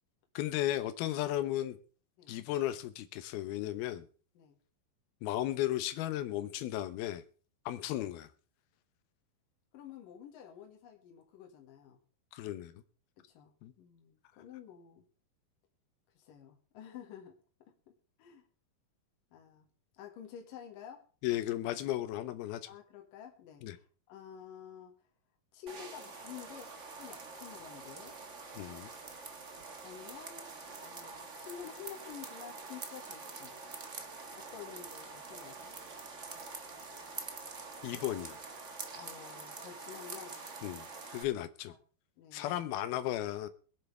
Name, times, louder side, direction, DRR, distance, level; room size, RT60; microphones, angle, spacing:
voice 1, 0.4-1.8 2.3-4.1 5.2-7.2 7.7-8.3 12.3-12.7 13.6-13.7 21.2-22.6 23.6-23.8 28.6-28.9 37.8-38.4 40.6-40.9 41.1-41.7 42.3-43.5, left 13 dB, 85° left, 11 dB, 2.9 m, -35 dB
voice 2, 9.7-12.0 13.2-13.5 13.8-15.1 16.1-17.4 18.2-18.4 19.3-19.7 19.9-21.0 22.7-24.9 25.5-28.2 29.2-29.3 29.8-30.5 30.8-33.5 34.3-35.8 39.0-40.4 41.7-41.8 42.2-42.6, left 8 dB, 70° left, 1 dB, 3.3 m, -50 dB
sound 1, 25.7-41.2, right 4 dB, 85° right, 0.6 m, -46 dB
22.5 x 9.6 x 3.3 m, 0.38 s
omnidirectional pair, 4.3 m